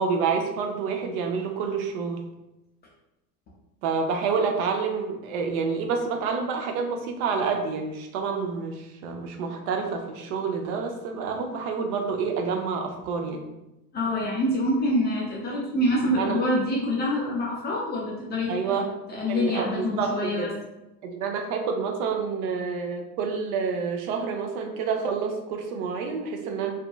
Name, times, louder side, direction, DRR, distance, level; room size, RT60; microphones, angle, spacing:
voice 1, 0.0-2.2 3.8-13.5 16.2-16.4 18.5-18.9 19.3-20.5 21.0-26.7, right 5 dB, 60° right, 3 dB, 0.5 m, -28 dB
voice 2, 13.9-20.5, left 1 dB, 25° left, -4 dB, 0.3 m, -26 dB
2.6 x 2.2 x 2.2 m, 0.95 s
hypercardioid pair, 90°, 50 cm